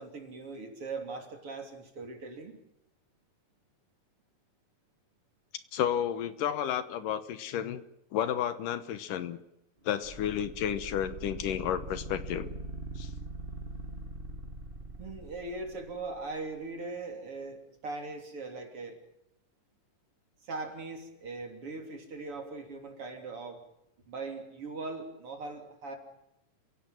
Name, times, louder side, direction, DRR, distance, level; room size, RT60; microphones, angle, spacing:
voice 1, 0.0-2.6 15.0-19.0 20.4-23.6 24.1-26.0, right 3 dB, 40° right, 4 dB, 3.9 m, -40 dB
voice 2, 5.7-7.8 8.1-9.4 9.9-12.5 13.0-13.1, left 9 dB, 75° left, 12 dB, 2.6 m, -32 dB
sound 1, 10.0-16.2, right 1 dB, 25° right, 1.2 m, -42 dB
30.0 x 17.0 x 7.6 m, 0.85 s
omnidirectional pair, 4.0 m